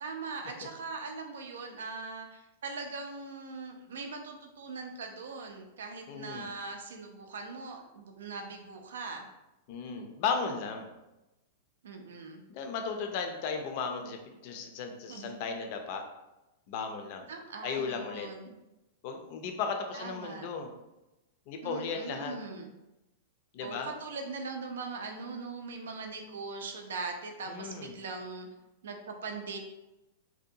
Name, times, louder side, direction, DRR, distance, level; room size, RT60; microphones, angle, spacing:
voice 1, 0.0-9.2 11.8-12.4 15.1-15.4 17.3-18.6 19.9-20.5 21.6-22.7 23.6-28.5 28.8-29.6, right 4 dB, 90° right, 4 dB, 0.4 m, -41 dB
voice 2, 6.1-6.5 9.7-10.9 12.5-16.0 16.7-17.3 17.6-18.3 19.0-20.7 21.5-22.4 23.5-23.9 27.5-27.9, left 5 dB, 50° left, 4 dB, 0.4 m, -35 dB
2.6 x 2.2 x 2.6 m, 0.98 s
hypercardioid pair, 140°, 0 cm